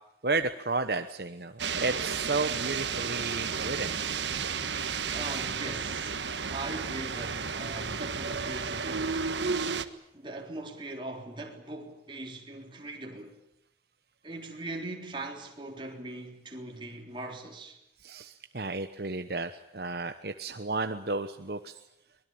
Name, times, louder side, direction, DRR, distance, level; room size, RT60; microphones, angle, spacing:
voice 1, 0.2-1.5 1.8-4.0 18.0-21.8, right 3 dB, 60° right, 1.1 m, -32 dB
sound 1, 1.6-9.8, right 5 dB, 85° right, 1.5 m, -32 dB
voice 2, 5.1-6.2 6.5-9.2 10.1-13.4 14.2-17.8, right 2 dB, 25° right, 3.8 m, -40 dB
24.0 x 20.5 x 8.8 m
head